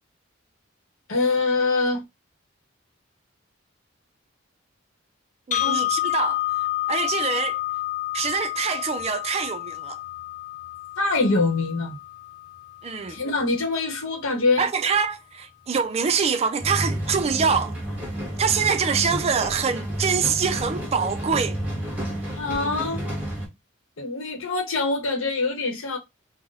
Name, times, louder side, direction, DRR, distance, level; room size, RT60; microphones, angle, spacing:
voice 1, 1.1-2.0 5.6-5.8 11.0-12.0 13.1-14.7 22.3-23.0 24.0-26.0, left 3 dB, 80° left, 0.9 m, -24 dB
sound 1, 5.5-13.5, left 15 dB, 40° left, 0.4 m, -29 dB
voice 2, 5.5-7.6 8.1-10.0 12.8-13.2 14.6-17.8 18.4-21.6, right 6 dB, 30° right, 0.4 m, -25 dB
sound 2, 16.6-23.5, right 1 dB, 10° right, 0.9 m, -30 dB
2.5 x 2.1 x 3.8 m
head